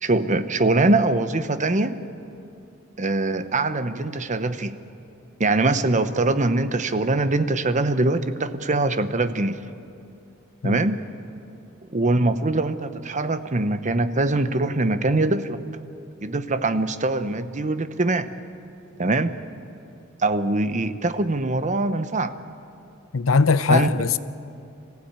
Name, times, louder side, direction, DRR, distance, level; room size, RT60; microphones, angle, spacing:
voice 1, 0.0-2.0 3.0-4.8 5.4-9.6 10.6-11.0 11.9-15.6 16.2-18.3 19.0-19.3 20.2-22.3 23.7-23.9, right 2 dB, 35° right, 0.9 m, -23 dB
voice 2, 23.1-24.2, left 4 dB, 80° left, 0.7 m, -20 dB
25.0 x 15.5 x 8.9 m
head